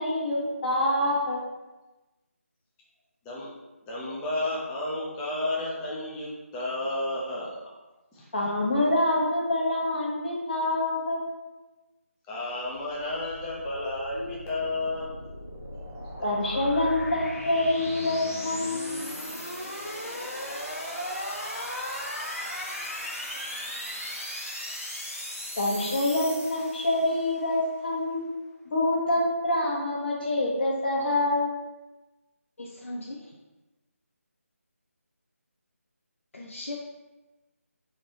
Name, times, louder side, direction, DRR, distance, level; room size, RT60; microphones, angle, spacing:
voice 1, 0.0-1.4 8.3-11.2 16.2-19.0 25.6-28.2 28.7-31.6, left 1 dB, 40° left, -3 dB, 1.0 m, -26 dB
voice 2, 3.9-7.6 8.1-8.3 12.3-15.1 16.2-16.3, left 2 dB, 5° left, -6 dB, 0.4 m, -32 dB
sound 1, 12.6-27.3, left 1 dB, 90° left, 1.3 m, -37 dB
voice 3, 32.6-33.3 36.3-36.8, left 2 dB, 65° left, -2 dB, 0.6 m, -38 dB
3.2 x 2.7 x 3.9 m, 1.1 s
figure-of-eight pair, 165°, 8 cm